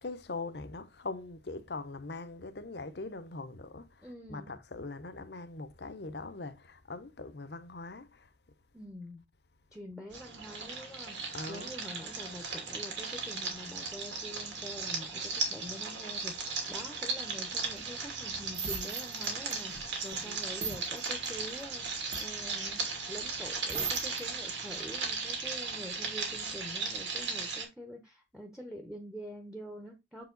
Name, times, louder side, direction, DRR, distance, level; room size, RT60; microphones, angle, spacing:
voice 1, 0.0-8.3 11.3-11.8 20.1-20.4, left 3 dB, 65° left, 0.8 m, -42 dB
voice 2, 4.0-4.5 8.7-9.2 9.7-11.2 11.5-19.7 20.0-30.3, equal, 5° right, 1.0 m, -46 dB
sound 1, 10.1-27.6, right 4 dB, 90° right, 2.6 m, -37 dB
sound 2, 17.6-24.2 24.7-25.0, right 5 dB, 35° right, 1.5 m, -40 dB
7.4 x 4.8 x 3.9 m
head